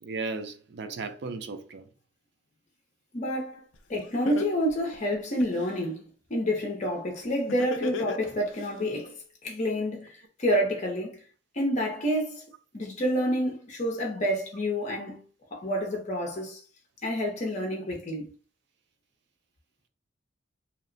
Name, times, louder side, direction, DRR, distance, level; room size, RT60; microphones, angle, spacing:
voice 1, 0.0-1.9, right 4 dB, 60° right, 0.4 m, -35 dB
voice 2, 3.1-3.6 3.9-9.1 9.4-11.2 11.5-12.4 12.7-15.2 15.5-16.6 17.0-18.3, equal, 40° left, 0.7 m, -28 dB
Laughter, 3.7-3.8 4.3-5.7 7.5-8.7, left 5 dB, 80° left, 0.4 m, -34 dB
2.8 x 2.1 x 2.5 m
head